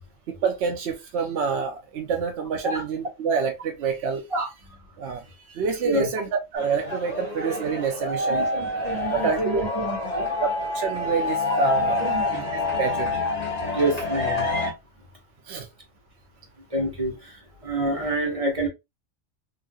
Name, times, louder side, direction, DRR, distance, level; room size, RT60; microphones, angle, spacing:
voice 1, 0.3-4.2 5.0-8.5 9.1-9.6 10.7-12.0 12.3-13.1 15.4-15.7, right 5 dB, 65° right, 0.8 m, -27 dB
sound 1, 6.5-14.7, left 2 dB, 30° left, 1.4 m, -27 dB
voice 2, 8.3-10.3 12.0-12.3 13.7-14.5 16.7-18.7, right 1 dB, 30° right, 1.0 m, -27 dB
3.1 x 2.5 x 2.5 m
omnidirectional pair, 1.3 m